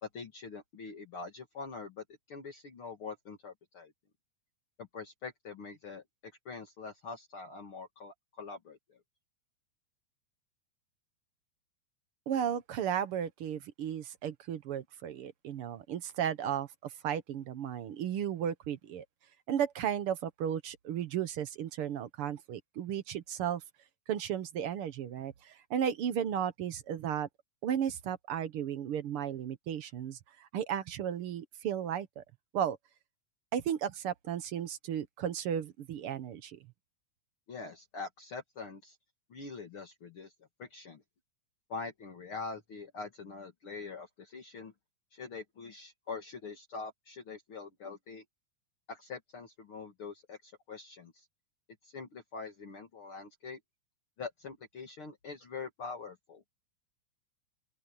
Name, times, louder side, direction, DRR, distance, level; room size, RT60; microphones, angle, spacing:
voice 1, 0.0-3.9 4.8-9.0 37.5-39.0 39.3-40.3 40.6-41.0 41.7-44.7 45.1-48.2 48.9-51.3 51.8-53.6 54.2-56.4, left 4 dB, 45° left, 2.6 m, -44 dB
voice 2, 12.3-19.0 19.5-23.6 24.1-27.3 27.6-32.2 32.5-32.8 33.5-36.6, right 9 dB, 65° right, 1.5 m, -34 dB
open air
omnidirectional pair, 3.6 m